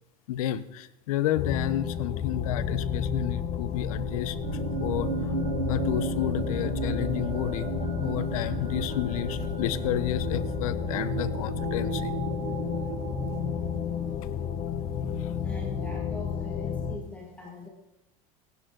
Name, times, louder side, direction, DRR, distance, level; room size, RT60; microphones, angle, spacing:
voice 1, 0.3-4.4 4.8-5.3 5.7-12.1, left 12 dB, 90° left, 15 dB, 0.8 m, -31 dB
sound 1, 1.4-17.0, left 7 dB, 40° left, 1.1 m, -31 dB
sound 2, 4.4-14.2, right 6 dB, 90° right, 1.6 m, -35 dB
voice 2, 15.4-17.7, left 1 dB, 10° left, -1 dB, 1.9 m, -42 dB
18.0 x 10.5 x 3.9 m, 0.94 s
supercardioid pair, 135°, 18 cm